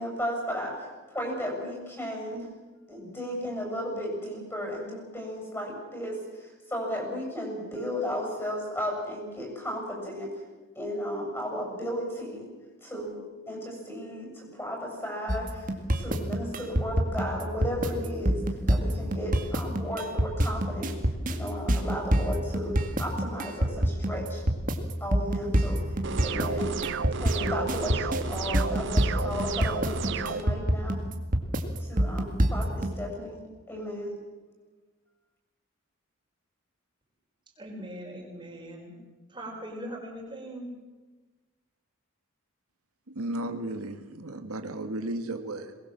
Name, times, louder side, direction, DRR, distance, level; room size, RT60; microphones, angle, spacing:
voice 1, 0.0-2.5 2.9-10.3 10.8-12.4 12.8-18.4 18.7-21.0 21.3-24.4 25.0-25.8 26.2-26.7 27.2-31.0 31.8-33.4 33.7-34.2, equal, 10° left, 1 dB, 7.2 m, -34 dB
sound 1, 15.3-32.9, right 1 dB, 40° right, 2.0 m, -26 dB
sound 2, 26.0-30.4, right 5 dB, 55° right, 0.7 m, -33 dB
voice 2, 37.6-39.0 39.3-40.7, right 1 dB, 20° right, 0 dB, 4.6 m, -40 dB
voice 3, 43.1-45.8, right 1 dB, 85° right, 7 dB, 1.6 m, -34 dB
22.5 x 20.5 x 7.5 m, 1.3 s
head